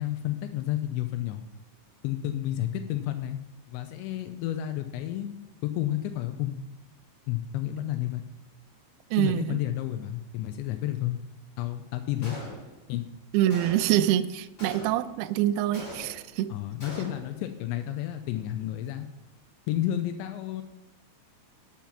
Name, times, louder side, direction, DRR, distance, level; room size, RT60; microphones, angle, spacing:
voice 1, 0.0-1.4 2.0-3.4 3.7-5.3 5.6-6.6 7.3-8.2 9.2-11.2 11.6-12.4 12.9-13.0 16.5-19.1 19.7-20.6, left 13 dB, 85° left, 8 dB, 3.0 m, -31 dB
voice 2, 9.1-9.6 13.3-16.5, right 12 dB, 90° right, 12 dB, 2.2 m, -25 dB
Gunshot gunfire, 12.2-12.9 13.5-14.1 14.6-15.2 15.7-16.4 16.8-17.4, equal, 20° left, 5.0 m, -42 dB
11.5 x 7.7 x 5.8 m, 0.95 s
omnidirectional pair, 5.1 m